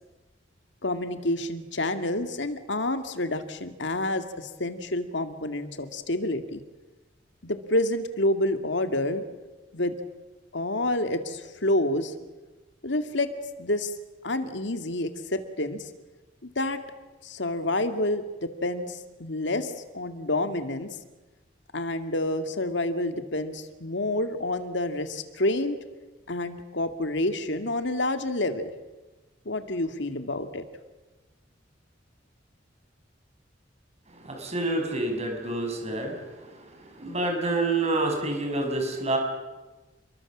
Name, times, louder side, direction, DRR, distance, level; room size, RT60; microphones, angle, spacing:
voice 1, 0.8-6.6 7.4-9.2 9.7-9.9 10.5-12.1 12.8-13.3 13.6-13.9 14.2-15.9 16.6-16.8 17.2-21.0 21.7-25.8 26.3-28.7 29.5-30.6, left 1 dB, 70° left, 8 dB, 2.2 m, -28 dB
voice 2, 34.2-36.2 37.0-39.2, right 2 dB, 35° right, 3 dB, 6.4 m, -27 dB
29.5 x 22.0 x 7.4 m, 1.2 s
head